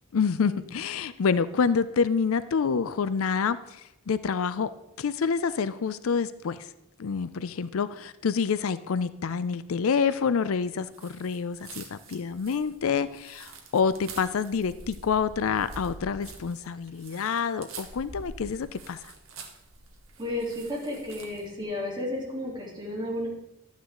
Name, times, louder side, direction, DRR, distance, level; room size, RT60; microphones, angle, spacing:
voice 1, 0.1-4.7 5.0-6.7 7.0-19.1, left 6 dB, 70° left, 14 dB, 0.5 m, -27 dB
sound 1, 10.9-21.5, right 3 dB, 65° right, 1.5 m, -46 dB
voice 2, 20.2-23.3, left 1 dB, 20° right, -4 dB, 3.4 m, -33 dB
12.5 x 9.5 x 3.8 m, 0.84 s
head